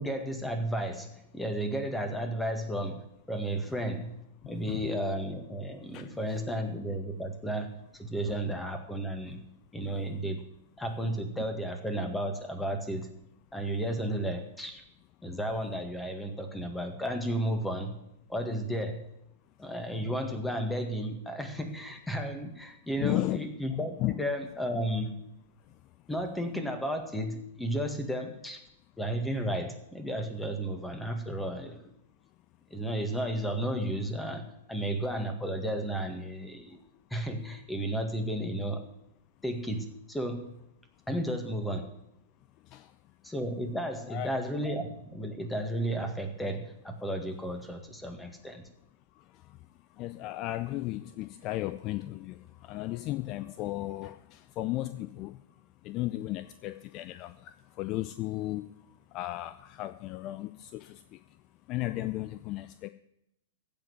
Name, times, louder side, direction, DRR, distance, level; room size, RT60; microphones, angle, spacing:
voice 1, 0.0-4.2 4.5-9.4 9.7-10.4 10.8-13.1 13.5-14.8 15.2-18.0 18.3-19.0 19.6-25.1 26.1-28.6 29.0-31.8 32.7-36.8 37.1-38.8 39.4-40.6 41.1-41.9 43.2-48.6, right 1 dB, 5° left, 5 dB, 1.9 m, -33 dB
voice 2, 4.4-4.9 5.9-6.1 23.0-23.4 24.0-24.1 25.7-25.8 42.6-42.9 44.1-44.3 49.2-49.6 49.9-55.4 55.8-61.4 61.7-62.9, left 17 dB, 40° left, 12 dB, 0.5 m, -35 dB
15.5 x 5.3 x 9.6 m, 0.79 s
hypercardioid pair, 110°, 0 cm